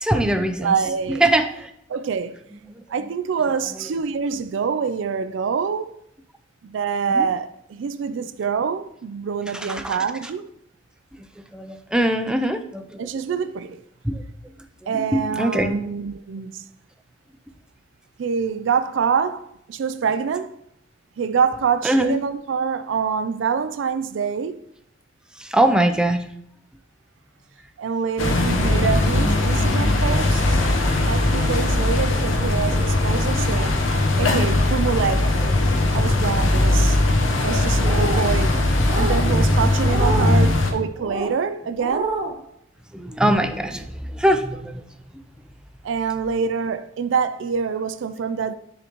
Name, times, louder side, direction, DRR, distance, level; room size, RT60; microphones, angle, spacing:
voice 1, 0.0-0.7 1.1-1.7 2.7-2.8 7.1-7.3 9.5-10.0 11.5-13.1 14.0-14.2 14.8-15.8 21.8-22.2 25.4-26.2 36.1-36.2 39.3-39.6 40.1-40.6 42.9-44.8, right 1 dB, 5° right, 0.5 m, -22 dB
voice 2, 0.6-1.2 1.9-2.4 2.9-6.0 6.6-10.5 13.0-13.8 14.9-16.6 18.2-20.5 21.2-24.6 27.8-30.6 31.0-33.8 34.2-35.4 35.9-37.0 37.4-38.6 38.9-42.1 45.8-48.5, right 6 dB, 70° right, 0.4 m, -25 dB
sound 1, 28.2-40.7, left 2 dB, 85° left, 0.9 m, -20 dB
sound 2, 37.7-38.3 38.8-39.2 39.8-40.4 40.9-41.3 41.8-42.3, right 3 dB, 30° right, 1.1 m, -28 dB
9.9 x 3.8 x 3.0 m
head